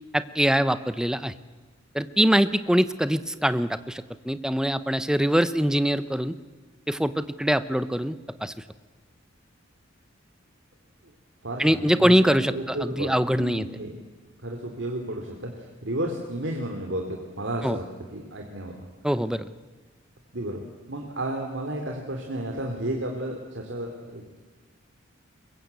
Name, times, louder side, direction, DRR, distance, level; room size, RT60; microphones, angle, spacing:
voice 1, 0.1-1.3 1.9-6.3 6.9-8.5 11.6-13.7 17.6-17.8 19.0-19.5, equal, 5° right, 13 dB, 0.7 m, -23 dB
voice 2, 11.4-13.9 14.4-17.8 18.1-18.9 20.3-20.6 20.9-24.4, right 1 dB, 65° right, 2 dB, 2.7 m, -32 dB
23.5 x 22.0 x 8.3 m, 1.3 s
head